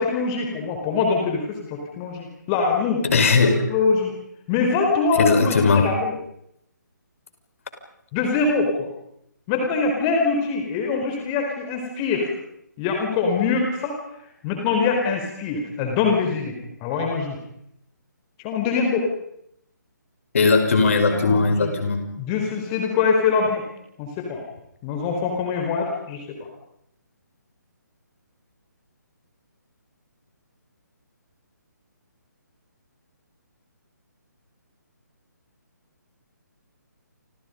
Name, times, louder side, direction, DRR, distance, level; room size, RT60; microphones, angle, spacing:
voice 1, 0.0-3.0 3.7-4.1 4.5-6.1 8.1-8.9 9.5-12.3 12.8-14.0 14.4-16.6 16.8-17.4 18.4-19.1 21.1-21.7 22.2-23.6 24.0-24.4 24.8-26.2, left 4 dB, 20° left, 2 dB, 4.6 m, -23 dB
voice 2, 3.0-3.6 5.2-5.9 20.3-22.0, left 4 dB, 45° left, 6 dB, 5.6 m, -18 dB
29.5 x 28.0 x 5.4 m, 0.76 s
figure-of-eight pair, 140°, 10 cm